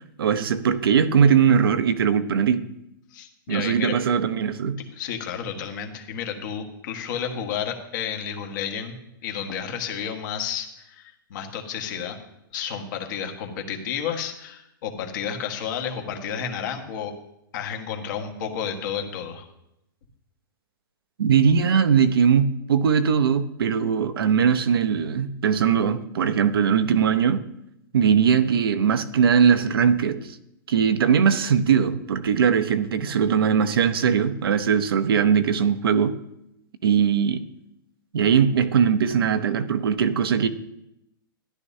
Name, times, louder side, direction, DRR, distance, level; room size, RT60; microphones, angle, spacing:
voice 1, 0.0-2.6 3.5-4.8 21.2-27.4 27.9-30.4 30.7-36.1 36.8-37.4 38.1-40.5, right 7 dB, 85° right, 10 dB, 0.8 m, -20 dB
voice 2, 3.1-4.2 4.8-8.9 9.2-12.2 12.5-17.1 17.5-19.4, left 7 dB, 55° left, 4 dB, 1.6 m, -31 dB
13.0 x 11.0 x 2.8 m, 0.82 s
hypercardioid pair, 140°, 12 cm